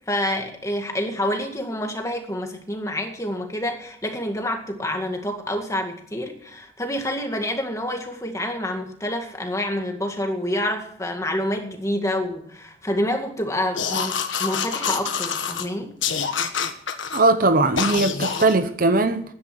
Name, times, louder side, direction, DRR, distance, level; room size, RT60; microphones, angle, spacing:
voice 1, 0.1-15.9, left 1 dB, 15° left, 2.0 m, -27 dB
sound 1, 13.7-15.7 16.0-17.2 17.8-18.5, left 6 dB, 80° left, 1.5 m, -26 dB
voice 2, 17.1-19.2, right 2 dB, 45° right, 0.8 m, -19 dB
12.0 x 10.0 x 7.8 m
head